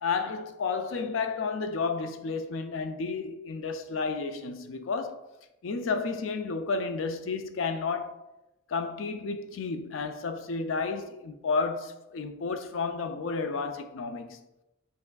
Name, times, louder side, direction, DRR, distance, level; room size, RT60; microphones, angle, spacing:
voice 1, 0.0-5.2 5.6-8.2 8.7-14.4, left 4 dB, 80° left, 0.4 m, -31 dB
5.5 x 3.6 x 2.3 m
head